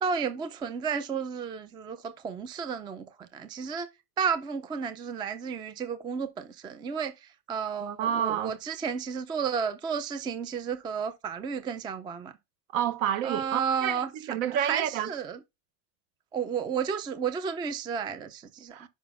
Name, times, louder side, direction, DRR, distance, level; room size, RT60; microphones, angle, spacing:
voice 1, 0.0-3.9 4.2-12.3 13.2-14.1 14.5-15.4 16.3-18.9, right 6 dB, 10° right, 0.3 m, -32 dB
voice 2, 7.8-8.5 12.7-15.1 18.7-18.9, right 10 dB, 65° right, 1.1 m, -29 dB
5.5 x 4.0 x 5.6 m
supercardioid pair, 145°, 41 cm